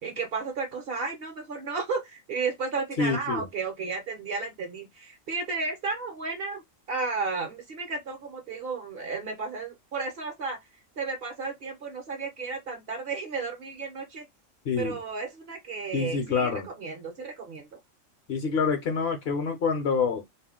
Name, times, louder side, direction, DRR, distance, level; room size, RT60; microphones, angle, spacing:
voice 1, 0.0-6.6 6.9-10.6 11.0-14.3 14.8-17.8, right 4 dB, 55° right, 0.7 m, -33 dB
voice 2, 3.0-3.4 14.6-15.0 15.9-16.7 18.3-20.3, left 5 dB, 60° left, 0.8 m, -27 dB
2.4 x 2.1 x 3.4 m
omnidirectional pair, 1.3 m